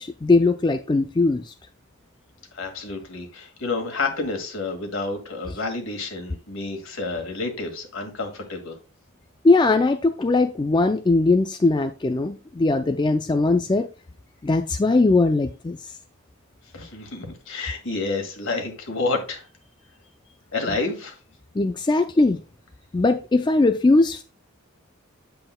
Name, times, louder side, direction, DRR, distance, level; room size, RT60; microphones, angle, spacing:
voice 1, 0.0-1.5 9.4-13.9 14.4-15.9 21.6-22.4 22.9-24.2, left 3 dB, 20° left, 0.3 m, -20 dB
voice 2, 2.5-8.8 16.7-19.5 20.5-21.2, left 3 dB, 65° left, 2.0 m, -29 dB
8.8 x 7.8 x 2.2 m
head